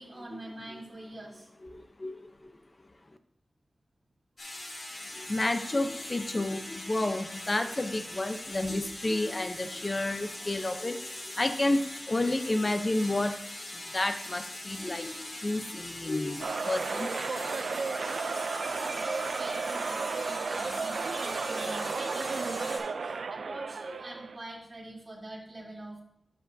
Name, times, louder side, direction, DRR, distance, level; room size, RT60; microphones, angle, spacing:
voice 1, 0.0-1.5 18.2-26.0, right 1 dB, 35° right, -5 dB, 3.4 m, -44 dB
voice 2, 1.7-2.5 5.1-13.4 13.7-17.1, left 2 dB, 35° left, 8 dB, 0.8 m, -31 dB
sound 1, 4.4-22.8, left 1 dB, 70° left, 3.7 m, -42 dB
sound 2, 16.4-24.4, right 4 dB, 85° right, 0.5 m, -33 dB
12.5 x 7.7 x 2.8 m, 0.79 s
wide cardioid pair, 80°, 0 cm